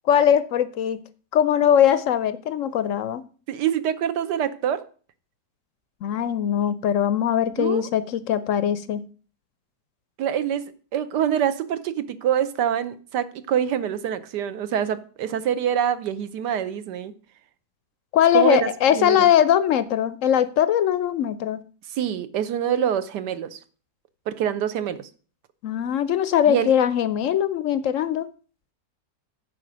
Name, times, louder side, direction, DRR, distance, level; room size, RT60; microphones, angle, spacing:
voice 1, 0.1-1.0 1.3-3.2 6.0-9.0 18.1-21.6 25.6-28.3, left 9 dB, 70° left, 0.7 m, -21 dB
voice 2, 3.5-4.8 7.6-7.9 10.2-17.1 18.3-19.3 21.9-23.6 24.3-25.1 26.5-26.7, right 9 dB, 75° right, 1.4 m, -25 dB
9.4 x 5.0 x 6.1 m
omnidirectional pair, 1.8 m